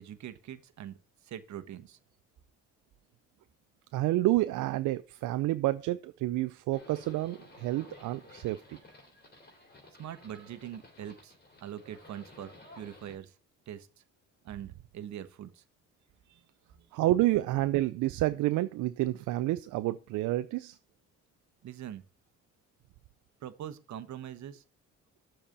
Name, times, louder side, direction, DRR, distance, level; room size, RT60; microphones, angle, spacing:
voice 1, 0.0-2.0 10.0-11.3 11.6-13.4 13.7-14.0 14.4-15.6 16.7-16.9 21.6-22.0 23.4-24.6, right 10 dB, 65° right, 1.1 m, -43 dB
voice 2, 3.9-8.8 16.9-20.8, right 16 dB, 85° right, 0.5 m, -29 dB
Livestock farm animals working animals, 6.7-13.1, left 2 dB, 35° left, 3.5 m, -54 dB
7.4 x 4.4 x 6.6 m
cardioid pair, 90°, 30 cm